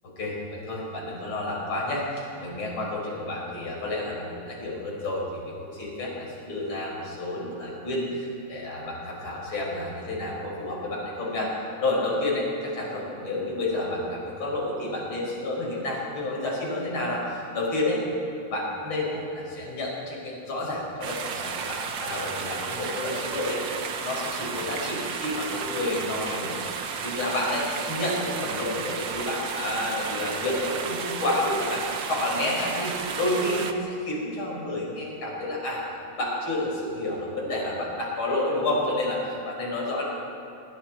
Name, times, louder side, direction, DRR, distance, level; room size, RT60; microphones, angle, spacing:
voice 1, 0.2-11.5 11.8-18.0 18.5-23.8 24.0-26.6 27.0-35.8 36.2-40.0, left 1 dB, 45° left, -3 dB, 6.2 m, -30 dB
sound 1, 21.0-33.7, right 6 dB, 55° right, 1.4 m, -33 dB
26.0 x 22.5 x 4.6 m, 2.9 s
omnidirectional pair, 3.3 m